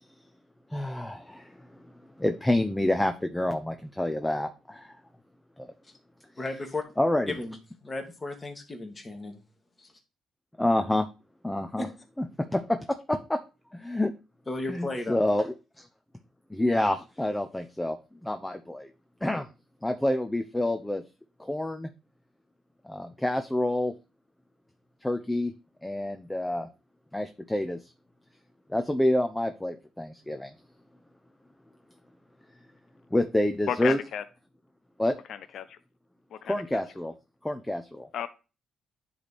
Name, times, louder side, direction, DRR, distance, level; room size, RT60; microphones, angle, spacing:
voice 1, 0.7-1.9 2.2-5.0 5.6-5.7 7.0-7.3 10.6-11.1 11.4-11.9 12.4-12.8 13.1-13.4 13.7-14.1 14.7-15.9 16.5-18.0 18.2-18.9 19.2-19.5 19.8-21.0 21.4-21.9 22.8-23.9 25.0-25.5 25.8-26.7 27.1-27.9 28.7-30.5 33.1-34.0 35.0-35.1 36.5-37.1 37.4-38.1, left 1 dB, 10° left, 0.6 m, -28 dB
voice 2, 6.4-6.8 7.3-7.6 7.8-9.4 9.8-9.9 11.8-11.9 14.5-15.2, left 2 dB, 25° left, 1.9 m, -34 dB
voice 3, 33.7-34.2 35.3-35.8 36.3-36.8 38.1-38.3, left 9 dB, 70° left, 0.6 m, -33 dB
10.0 x 3.4 x 4.2 m
cardioid pair, 90°, 0 cm